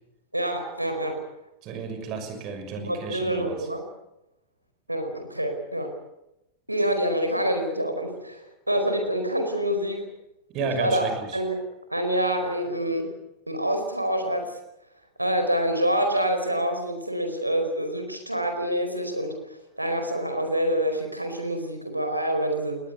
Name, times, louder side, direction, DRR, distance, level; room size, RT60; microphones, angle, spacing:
voice 1, 0.3-1.2 2.8-3.9 4.9-5.9 6.7-10.1 10.6-11.6 11.9-13.1 13.5-14.6 15.2-19.4 19.8-22.8, equal, 85° right, 6 dB, 4.7 m, -26 dB
voice 2, 1.6-3.7 10.5-11.4, right 5 dB, 40° right, 7 dB, 6.2 m, -33 dB
20.5 x 20.0 x 9.6 m, 0.91 s
figure-of-eight pair, 90°, 0 cm